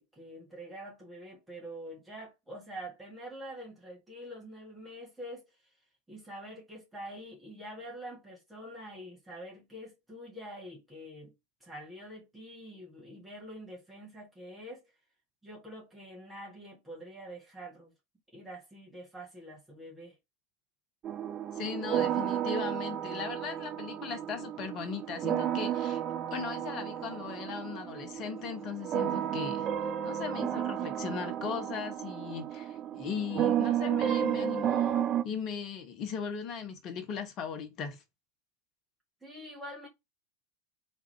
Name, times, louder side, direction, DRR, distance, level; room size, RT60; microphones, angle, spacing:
voice 1, 0.0-5.5 6.1-11.3 11.6-14.9 15.4-17.9 18.3-20.2 39.2-39.9, equal, 5° right, 1.8 m, -46 dB
sound 1, 21.0-35.2, right 10 dB, 30° right, 0.4 m, -32 dB
voice 2, 21.5-26.0 26.3-29.7 30.0-38.0, left 7 dB, 35° left, 0.9 m, -38 dB
3.5 x 3.2 x 3.2 m
figure-of-eight pair, 90°, 0 cm